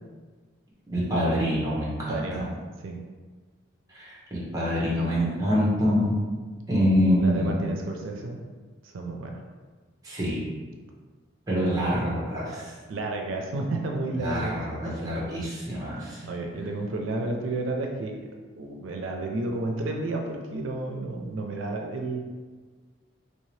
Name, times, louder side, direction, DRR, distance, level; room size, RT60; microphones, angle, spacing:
voice 1, 0.9-2.5 3.9-6.2 6.7-7.6 10.0-10.5 11.5-12.7 14.1-16.2, equal, 20° right, -6 dB, 0.9 m, -26 dB
voice 2, 2.1-2.4 2.8-3.0 7.2-8.4 8.8-9.3 12.9-14.6 14.8-14.9 16.2-18.2 18.6-22.2, right 2 dB, 90° right, 2 dB, 0.4 m, -31 dB
3.3 x 2.7 x 3.1 m, 1.4 s
head